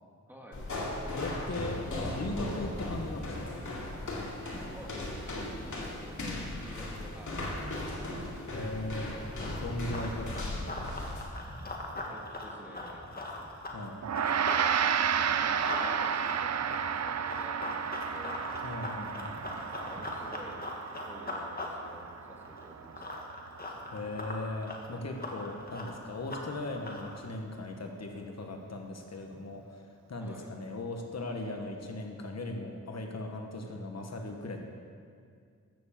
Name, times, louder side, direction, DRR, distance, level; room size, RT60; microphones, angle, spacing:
voice 1, 0.3-0.6 4.7-8.4 12.1-13.1 15.1-18.4 19.7-20.7 21.0-23.2 30.2-30.5, right 1 dB, 5° right, -1 dB, 1.9 m, -50 dB
sound 1, 0.5-11.3, left 1 dB, 80° left, 2.4 m, -37 dB
voice 2, 1.2-3.6 8.5-9.3 9.6-10.5 13.7-14.0 18.6-19.3 23.9-29.8 30.1-34.6, left 2 dB, 60° left, 3 dB, 1.2 m, -38 dB
Run, 9.2-14.6 15.0-27.2, left 2 dB, 30° left, 1.6 m, -41 dB
Gong, 14.0-23.6, right 8 dB, 60° right, 0.5 m, -32 dB
13.5 x 7.2 x 7.3 m, 2.2 s
wide cardioid pair, 120°, 30 cm